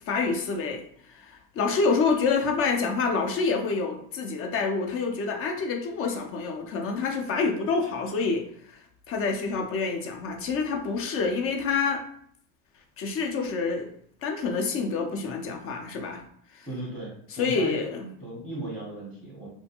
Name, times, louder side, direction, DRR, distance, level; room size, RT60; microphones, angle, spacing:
voice 1, 0.1-8.5 9.1-12.0 13.0-13.9 14.2-16.2 16.5-16.7 17.4-18.1, left 4 dB, 40° left, 4 dB, 0.5 m, -27 dB
voice 2, 16.7-17.8 18.2-19.5, right 2 dB, 5° right, -7 dB, 0.7 m, -36 dB
2.5 x 2.1 x 2.8 m, 0.65 s
supercardioid pair, 115°, 36 cm